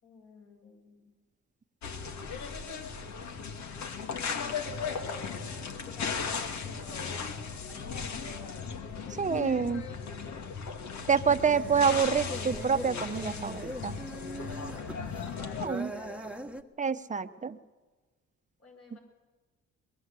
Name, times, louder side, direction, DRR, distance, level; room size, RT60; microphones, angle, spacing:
voice 1, 0.0-1.1 4.3-5.5 5.8-7.3 7.7-9.5 9.7-10.2 14.1-14.7 15.2-16.5 18.6-19.0, left 2 dB, 50° left, 0 dB, 7.5 m, -51 dB
sound 1, 1.8-15.7, left 5 dB, 65° left, 2.2 m, -37 dB
voice 2, 9.2-9.8 11.1-14.0 15.6-15.9 16.8-17.6 18.9-19.0, right 6 dB, 25° right, 10 dB, 1.1 m, -27 dB
sound 2, 11.3-16.6, right 1 dB, 5° right, 1.4 m, -42 dB
22.5 x 22.0 x 8.5 m, 1.3 s
cardioid pair, 90°, 30 cm